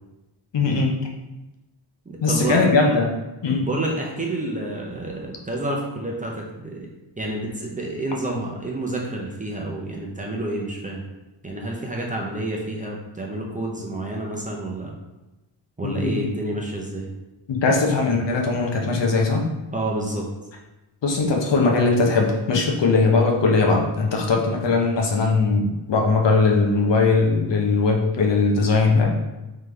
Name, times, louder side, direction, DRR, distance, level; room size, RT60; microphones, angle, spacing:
voice 1, 0.5-0.9 2.2-3.2 3.4-3.7 15.8-16.1 17.5-19.4 21.0-29.2, left 3 dB, 65° left, 0 dB, 0.8 m, -20 dB
voice 2, 2.1-2.6 3.6-6.9 7.2-11.0 11.4-14.9 15.8-17.1 19.7-20.3, right 1 dB, 15° right, -2 dB, 0.6 m, -29 dB
3.7 x 3.3 x 3.3 m, 1.0 s
wide cardioid pair, 105°, 48 cm